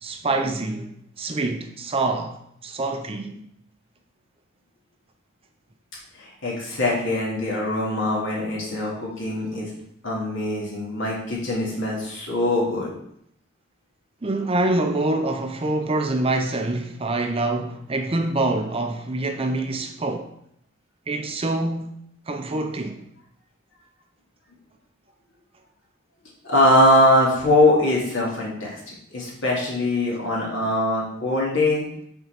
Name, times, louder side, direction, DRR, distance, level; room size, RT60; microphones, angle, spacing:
voice 1, 0.0-0.9 1.2-3.4 11.7-11.8 14.2-20.3 21.1-22.0 22.3-23.0, right 2 dB, 30° right, 0.6 m, -25 dB
voice 2, 6.2-9.7 10.0-12.9 26.5-31.8, left 1 dB, 65° left, 2.6 m, -22 dB
5.7 x 4.4 x 5.7 m
head